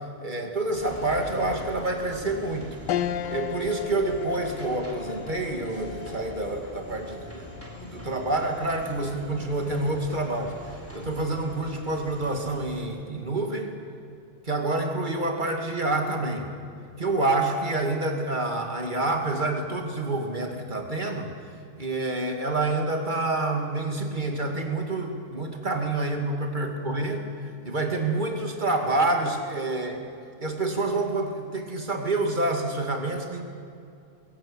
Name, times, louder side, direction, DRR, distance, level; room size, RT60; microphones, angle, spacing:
voice 1, 0.2-2.7 3.3-7.5 7.8-10.5 10.9-13.7 14.5-16.5 17.0-21.3 21.8-30.0 30.4-33.4, right 2 dB, 20° right, 3 dB, 2.4 m, -28 dB
sound 1, 0.7-12.9, equal, 5° right, 4.1 m, -43 dB
sound 2, 2.9-12.5 13.0-13.1 14.4-14.8, left 10 dB, 65° left, 1.2 m, -38 dB
21.5 x 17.5 x 8.1 m, 2.5 s
omnidirectional pair, 2.4 m